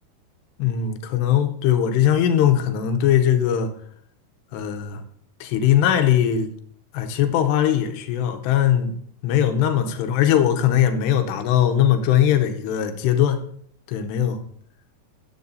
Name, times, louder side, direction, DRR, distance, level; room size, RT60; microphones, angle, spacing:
voice 1, 0.6-3.7 4.5-5.0 5.4-6.5 6.9-8.9 9.2-13.4 13.9-14.4, left 10 dB, 90° left, 6 dB, 3.0 m, -20 dB
14.0 x 10.5 x 2.7 m, 0.64 s
omnidirectional pair, 4.8 m